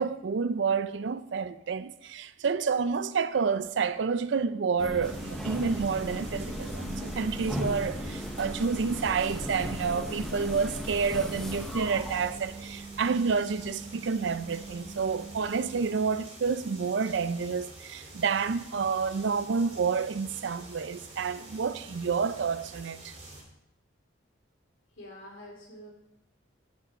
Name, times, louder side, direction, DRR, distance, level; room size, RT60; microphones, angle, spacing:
voice 1, 0.0-23.1, right 5 dB, 65° right, 0.4 m, -29 dB
sound 1, 4.8-15.8, equal, ahead, 0.7 m, -37 dB
sound 2, 5.0-23.4, right 2 dB, 30° right, 2.7 m, -48 dB
voice 2, 25.0-25.9, equal, 80° left, 3.1 m, -46 dB
9.9 x 5.4 x 5.1 m
head